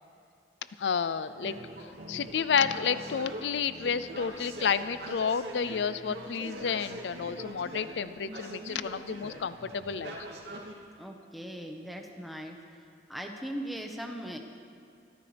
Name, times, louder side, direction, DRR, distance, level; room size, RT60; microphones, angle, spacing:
voice 1, 0.8-1.6 2.1-10.2, left 6 dB, 80° left, 13 dB, 0.4 m, -30 dB
sound 1, 1.4-10.7, right 1 dB, 85° right, 2.5 m, -43 dB
voice 2, 11.0-12.6 13.1-14.4, equal, ahead, 2 dB, 1.2 m, -39 dB
24.0 x 14.0 x 3.4 m, 2.2 s
head